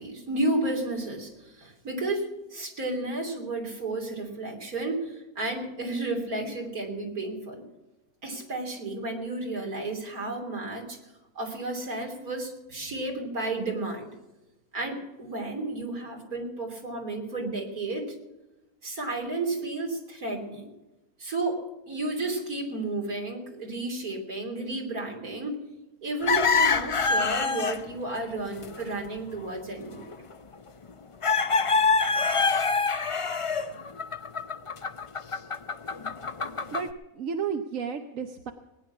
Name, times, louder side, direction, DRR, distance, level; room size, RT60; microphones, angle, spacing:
voice 1, 0.0-7.6 8.2-11.0 11.4-14.1 14.7-18.2 18.8-20.7 21.2-25.6 26.0-30.2, right 2 dB, 85° right, 2 dB, 3.7 m, -32 dB
sound 1, 26.2-27.8 28.1-28.2 28.6-28.8 30.1-30.2 31.2-36.9, left 4 dB, 45° left, 0.4 m, -25 dB
voice 2, 36.7-38.5, right 6 dB, 65° right, 6 dB, 1.2 m, -32 dB
19.5 x 10.0 x 5.9 m, 1.0 s
omnidirectional pair, 1.5 m